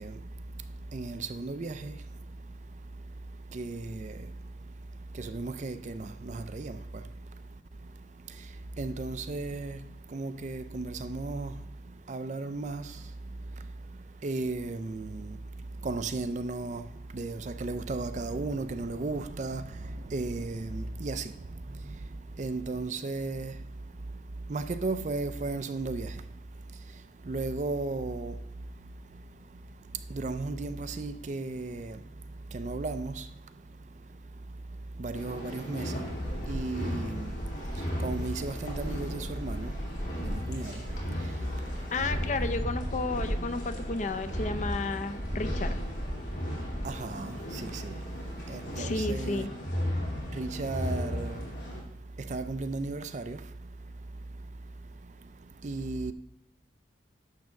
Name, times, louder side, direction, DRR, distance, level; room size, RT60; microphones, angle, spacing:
voice 1, 0.0-41.9 46.8-49.5 50.2-56.1, right 3 dB, 40° right, 0.4 m, -37 dB
sound 1, 35.1-51.8, equal, 70° left, 2.8 m, -34 dB
voice 2, 41.9-45.7 48.8-49.5, left 3 dB, 40° left, 0.6 m, -32 dB
10.5 x 3.5 x 6.4 m
head